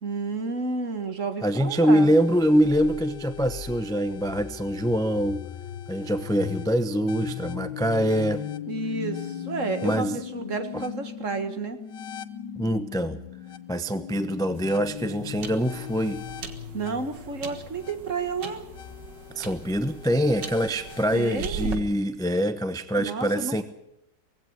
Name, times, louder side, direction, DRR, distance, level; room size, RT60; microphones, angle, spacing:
voice 1, 0.0-2.1 8.7-11.8 16.7-18.6 21.1-21.9 23.0-23.6, right 4 dB, 45° right, 9 dB, 2.1 m, -31 dB
voice 2, 1.4-5.5 5.9-8.4 9.8-10.2 12.6-13.2 13.7-16.2 19.3-23.6, equal, 5° left, 11 dB, 0.5 m, -24 dB
sound 1, 1.7-21.4, left 9 dB, 80° left, 1.6 m, -39 dB
sound 2, 14.4-21.8, right 5 dB, 80° right, 2.4 m, -40 dB
19.5 x 16.0 x 9.6 m, 0.80 s
omnidirectional pair, 1.9 m